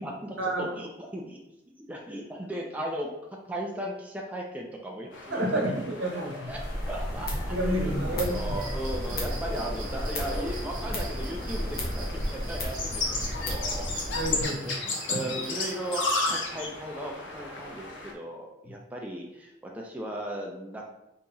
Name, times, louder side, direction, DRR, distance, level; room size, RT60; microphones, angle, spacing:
voice 1, 0.0-1.4 1.9-3.1 3.5-5.4 6.5-6.6 6.9-14.1 14.3-20.8, right 1 dB, 10° right, -1 dB, 0.4 m, -37 dB
sound 1, 5.1-18.1, left 3 dB, 80° left, 0.8 m, -35 dB
voice 2, 5.3-6.5 7.5-8.6 9.1-9.2 14.1-14.7 15.1-15.2, right 1 dB, 75° right, -1 dB, 1.1 m, -29 dB
sound 2, 6.5-14.4, equal, 55° left, 1.1 m, -33 dB
sound 3, 8.2-16.1, right 4 dB, 45° right, 0.8 m, -45 dB
4.0 x 2.9 x 3.7 m, 0.90 s
head